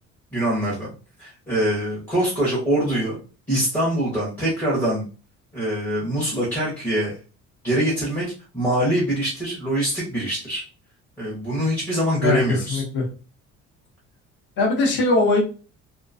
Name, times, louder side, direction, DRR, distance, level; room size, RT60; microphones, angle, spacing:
voice 1, 0.3-0.9 1.2-3.2 3.5-5.1 5.5-7.2 7.6-10.7 11.2-12.8, right 1 dB, 5° left, -7 dB, 0.7 m, -24 dB
voice 2, 12.7-13.0 14.6-15.4, left 3 dB, 40° left, 0 dB, 0.7 m, -20 dB
2.3 x 2.2 x 2.4 m, 0.34 s
cardioid pair, 160°, 29 cm